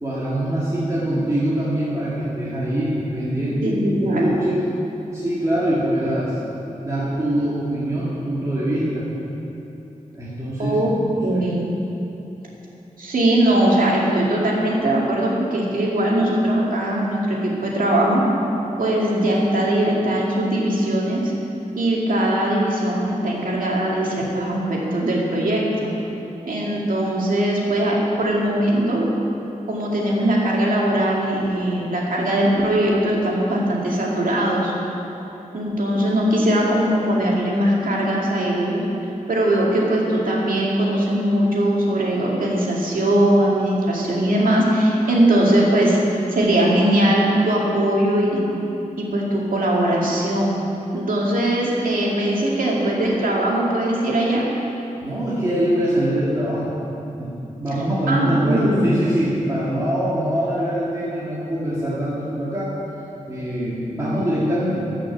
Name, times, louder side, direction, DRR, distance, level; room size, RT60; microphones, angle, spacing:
voice 1, 0.0-4.6 5.1-6.3 6.8-9.1 10.1-10.8 11.3-11.4 55.0-56.7 57.2-62.7 63.3-64.9, right 1 dB, 25° right, -9 dB, 2.2 m, -23 dB
voice 2, 3.6-4.4 10.6-10.9 11.2-11.7 13.0-18.2 18.8-21.3 21.8-25.9 26.4-29.1 29.7-34.7 35.5-38.8 39.3-46.0 46.3-48.4 49.0-50.6 50.9-54.4 58.1-58.9, right 1 dB, 85° right, -4 dB, 2.3 m, -20 dB
14.0 x 6.0 x 7.4 m, 3.0 s
wide cardioid pair, 110°, 14 cm